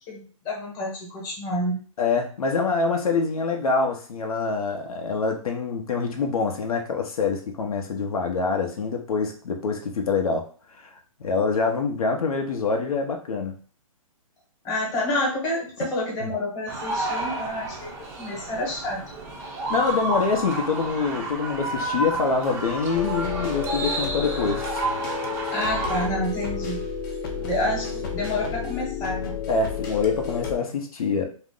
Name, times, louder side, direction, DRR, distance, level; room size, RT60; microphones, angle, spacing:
voice 1, 0.1-1.8 14.6-19.0 25.5-26.8 27.4-29.4, left 1 dB, 20° left, -3 dB, 0.9 m, -29 dB
voice 2, 2.0-10.5 11.2-13.6 19.7-24.8 29.5-31.2, left 4 dB, 85° left, 3 dB, 0.6 m, -25 dB
sound 1, 16.7-26.1, right 2 dB, 15° right, 0.4 m, -30 dB
sound 2, 22.9-30.6, left 6 dB, 35° left, 0.5 m, -31 dB
2.4 x 2.0 x 3.6 m, 0.41 s
hypercardioid pair, 155°, 18 cm